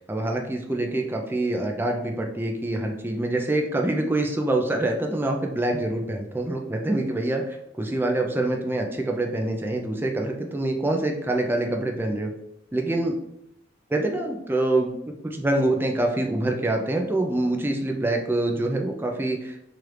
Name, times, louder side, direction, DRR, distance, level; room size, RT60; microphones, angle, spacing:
voice 1, 0.1-12.3 12.7-13.1 13.9-14.9 15.2-19.6, right 2 dB, 10° right, 2 dB, 0.4 m, -25 dB
4.6 x 2.5 x 3.2 m, 0.80 s
head